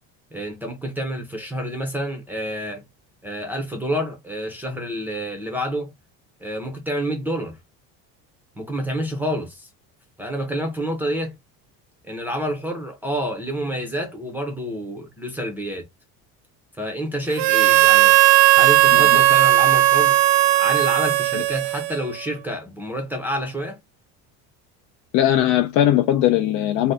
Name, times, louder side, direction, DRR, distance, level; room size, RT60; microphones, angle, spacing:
voice 1, 0.3-2.8 3.2-5.9 6.4-7.6 8.6-9.7 10.2-11.3 12.0-15.9 16.8-18.1 18.6-20.2 20.6-23.8, equal, 5° right, 0.6 m, -28 dB
Harmonica, 17.4-22.2, right 15 dB, 85° right, 0.5 m, -16 dB
voice 2, 25.1-26.9, left 12 dB, 60° left, 0.4 m, -19 dB
2.7 x 2.1 x 3.4 m
cardioid pair, 155°, 36 cm